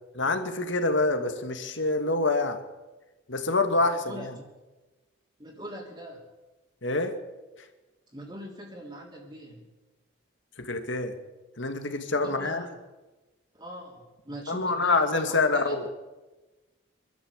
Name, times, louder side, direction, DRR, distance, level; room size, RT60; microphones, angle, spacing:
voice 1, 0.1-2.6 3.3-4.3 6.8-7.1 10.6-11.1 11.6-12.7 14.5-15.9, left 3 dB, 70° left, 7 dB, 2.3 m, -26 dB
voice 2, 3.7-4.4 5.4-6.3 8.1-9.7 12.2-12.7 13.5-15.7, equal, 25° right, -3 dB, 3.3 m, -43 dB
26.5 x 12.5 x 8.3 m, 1.2 s
head